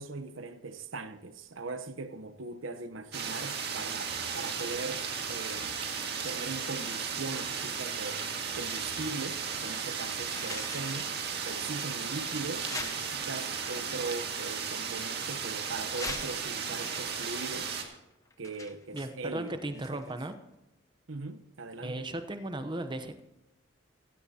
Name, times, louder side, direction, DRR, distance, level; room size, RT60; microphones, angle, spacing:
voice 1, 0.0-5.8 6.2-8.2 8.5-11.1 11.5-17.8 18.4-20.2 21.1-22.1, right 3 dB, 90° right, 1.0 m, -40 dB
sound 1, 3.1-17.8, right 6 dB, 55° right, 2.1 m, -35 dB
sound 2, 8.1-9.4 9.6-11.2 11.7-11.8 12.6-13.6 14.5-15.4 15.8-20.3 20.5-20.6, left 3 dB, 15° left, 0.9 m, -44 dB
voice 2, 18.9-20.3 21.8-23.2, right 1 dB, 25° right, 0.9 m, -36 dB
16.5 x 15.5 x 2.9 m
head